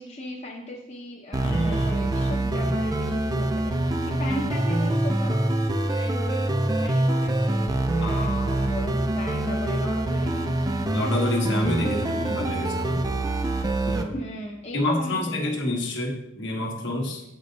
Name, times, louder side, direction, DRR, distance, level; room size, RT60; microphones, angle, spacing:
voice 1, 0.0-5.4 5.9-10.7 14.1-15.9, left 1 dB, 35° left, -2 dB, 0.8 m, -37 dB
sound 1, 1.3-14.0, right 1 dB, 20° right, 0.4 m, -25 dB
voice 2, 1.4-2.1 2.6-2.7 8.0-8.6 10.9-13.0 13.9-14.1 14.7-17.2, left 1 dB, 65° left, 1 dB, 1.3 m, -28 dB
8.0 x 5.1 x 3.9 m, 0.88 s
head